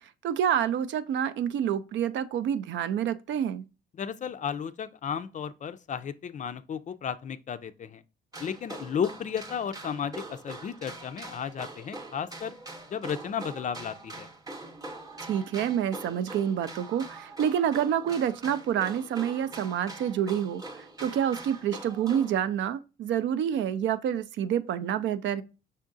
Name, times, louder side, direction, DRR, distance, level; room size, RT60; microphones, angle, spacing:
voice 1, 0.2-3.6 15.3-25.4, right 9 dB, 70° right, 0.4 m, -28 dB
voice 2, 4.0-8.0 8.4-12.6 12.9-14.3, left 7 dB, 40° left, 0.4 m, -34 dB
sound 1, 8.3-22.3, right 2 dB, 20° right, 0.8 m, -43 dB
5.6 x 3.6 x 2.6 m
cardioid pair, 90°, 20 cm